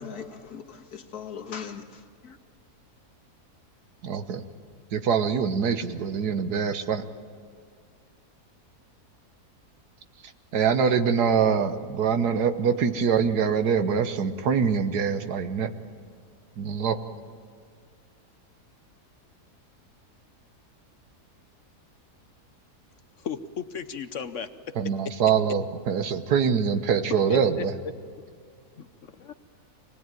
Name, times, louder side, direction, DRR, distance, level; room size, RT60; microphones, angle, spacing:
voice 1, 0.0-2.4, left 7 dB, 75° left, 4 dB, 2.0 m, -40 dB
voice 2, 4.0-4.4 4.9-7.0 10.5-15.7 16.6-17.0 24.7-27.7, right 6 dB, 80° right, 9 dB, 1.6 m, -24 dB
voice 3, 23.2-24.5 27.3-27.6 28.8-29.3, left 7 dB, 55° left, 10 dB, 1.0 m, -35 dB
25.5 x 19.5 x 9.1 m, 2.1 s
omnidirectional pair, 1.7 m